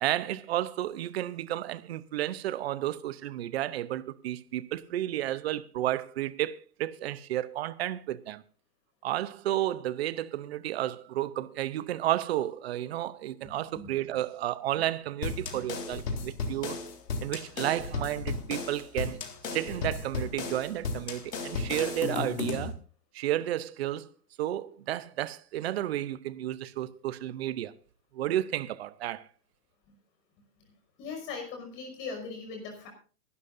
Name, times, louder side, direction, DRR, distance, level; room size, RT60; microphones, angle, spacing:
voice 1, 0.0-8.4 9.0-16.8 17.2-19.2 19.4-22.8 23.1-24.1 24.4-27.7 28.1-29.3, right 13 dB, 40° right, 0.7 m, -32 dB
sound 1, 15.2-22.7, left 4 dB, 85° left, 3.7 m, -34 dB
voice 2, 31.0-32.9, left 4 dB, 25° left, 5.7 m, -39 dB
23.0 x 12.5 x 2.6 m
hypercardioid pair, 160°, 47 cm